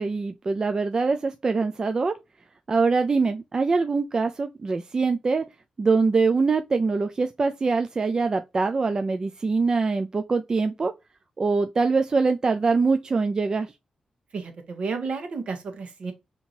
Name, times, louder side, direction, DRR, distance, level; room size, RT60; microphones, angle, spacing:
voice 1, 0.0-2.2 2.7-5.4 5.8-10.9 11.4-13.7, right 4 dB, 35° right, 0.3 m, -23 dB
voice 2, 14.3-16.1, right 4 dB, 65° right, 1.2 m, -32 dB
4.4 x 2.9 x 2.6 m
wide cardioid pair, 110°, 2 cm